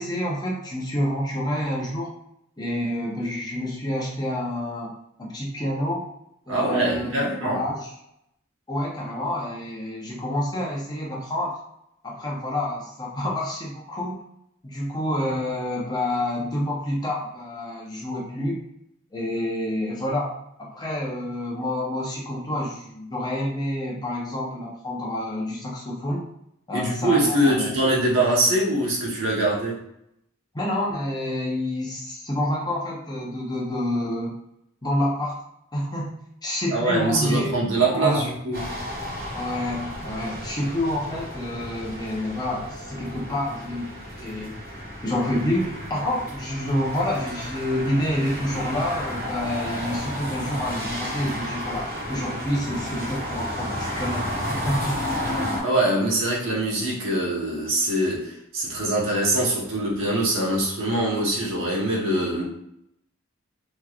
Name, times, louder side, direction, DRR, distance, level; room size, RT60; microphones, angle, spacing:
voice 1, 0.0-2.1 2.6-6.1 6.5-7.9 8.7-11.6 12.0-14.2 14.6-18.6 19.1-26.3 26.7-27.7 30.5-34.4 34.8-35.4 35.7-38.3 39.3-43.9 44.2-44.6 45.0-55.0, left 1 dB, 20° left, -3 dB, 0.7 m, -28 dB
voice 2, 6.5-7.6 26.7-29.8 36.7-38.7 55.6-62.4, right 1 dB, 70° right, -4 dB, 1.1 m, -23 dB
sound 1, 38.5-55.6, equal, 45° right, 1.4 m, -32 dB
3.5 x 3.1 x 2.4 m, 0.78 s
head